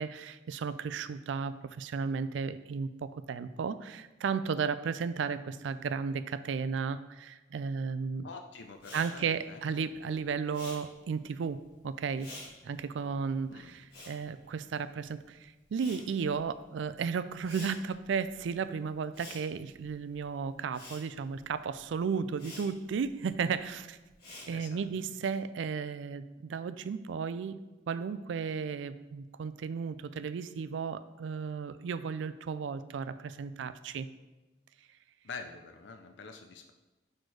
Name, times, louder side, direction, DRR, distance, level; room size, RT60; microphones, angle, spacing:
voice 1, 0.0-8.3 8.9-12.3 12.6-24.0 24.5-27.5 27.9-34.1, right 6 dB, 80° right, 13 dB, 0.3 m, -34 dB
voice 2, 8.2-9.7 13.5-13.8 24.5-25.1 35.2-36.7, left 4 dB, 70° left, 5 dB, 0.5 m, -46 dB
Respiratory sounds, 8.7-15.2 15.5-24.9, left 2 dB, 55° left, 2.1 m, -50 dB
6.4 x 4.3 x 4.7 m, 1.1 s
head